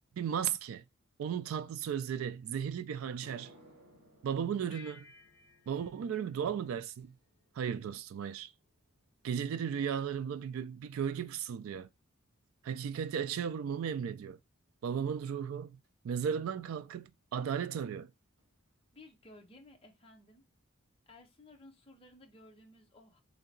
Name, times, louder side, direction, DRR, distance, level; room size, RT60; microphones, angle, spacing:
voice 1, 0.2-0.8 1.2-3.5 4.2-5.1 5.7-7.1 7.6-8.5 9.2-11.9 12.6-14.4 14.8-15.8 16.0-18.1, right 8 dB, 75° right, 0.3 m, -35 dB
sound 1, 2.5-2.6 3.0-11.5 11.8-12.2 13.0-13.1 15.8-15.9 17.6-17.7 17.9-18.1 18.4-18.9 19.3-19.4 19.9-20.0, right 1 dB, 50° right, 2.2 m, -64 dB
sound 2, 4.7-7.5, left 5 dB, 60° left, 0.5 m, -59 dB
voice 2, 18.9-20.5 21.1-23.2, left 2 dB, 25° left, 0.7 m, -57 dB
3.3 x 2.8 x 3.8 m
head